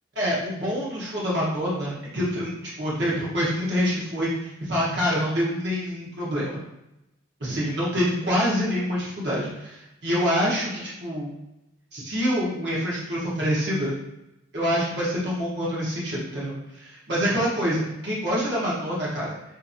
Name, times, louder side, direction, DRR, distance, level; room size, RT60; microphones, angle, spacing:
voice 1, 0.2-6.6 7.4-11.3 11.9-13.9 14.5-19.4, equal, 60° right, -7 dB, 0.9 m, -26 dB
2.8 x 2.6 x 2.5 m, 0.89 s
head